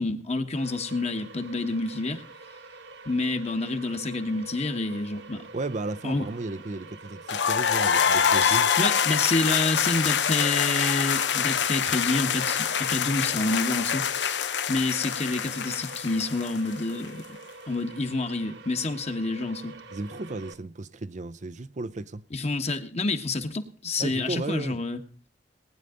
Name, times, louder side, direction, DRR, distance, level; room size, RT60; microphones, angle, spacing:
voice 1, 0.0-2.2 3.0-5.4 6.0-6.2 8.4-17.2 17.7-19.8 22.3-25.0, left 2 dB, 35° left, 1.5 m, -28 dB
sound 1, 0.5-20.5, right 3 dB, 70° right, 1.5 m, -46 dB
voice 2, 5.5-8.7 19.9-22.3 24.0-24.8, right 2 dB, 40° right, 0.6 m, -34 dB
sound 2, 7.3-17.1, left 7 dB, 75° left, 0.8 m, -25 dB
19.5 x 9.9 x 3.8 m
head